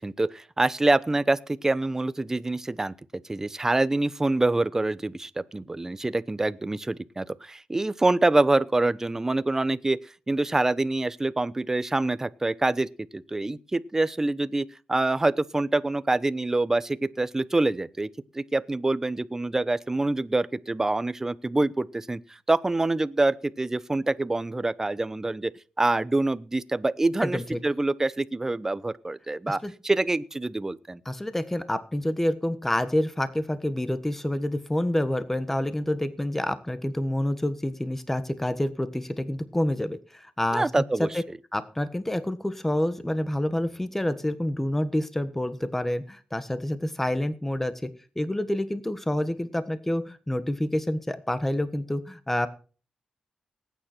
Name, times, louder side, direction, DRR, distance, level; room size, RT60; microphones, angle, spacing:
voice 1, 0.0-2.9 3.3-10.0 10.3-18.1 18.3-22.2 22.5-25.5 25.8-31.0 40.5-41.2, right 2 dB, 20° right, 0.8 m, -26 dB
voice 2, 27.2-27.6 29.5-29.7 31.0-40.7 41.0-41.2 41.5-47.9 48.1-52.5, left 1 dB, 10° left, 1.3 m, -28 dB
19.5 x 9.3 x 4.4 m
cardioid pair, 80°, 2 cm